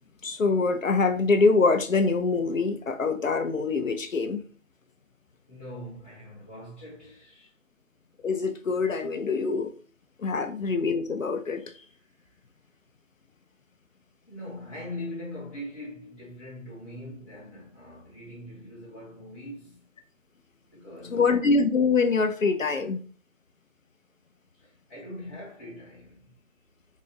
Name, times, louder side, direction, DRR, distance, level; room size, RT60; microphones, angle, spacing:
voice 1, 0.2-4.4 8.2-9.7 10.2-11.6 21.1-23.0, left 4 dB, 70° left, 0.7 m, -24 dB
voice 2, 5.5-7.5 10.2-10.4 12.2-12.3 14.3-19.8 20.7-21.4 24.5-26.4, left 1 dB, 10° left, 1.1 m, -42 dB
4.1 x 2.6 x 3.8 m
figure-of-eight pair, 170°, 41 cm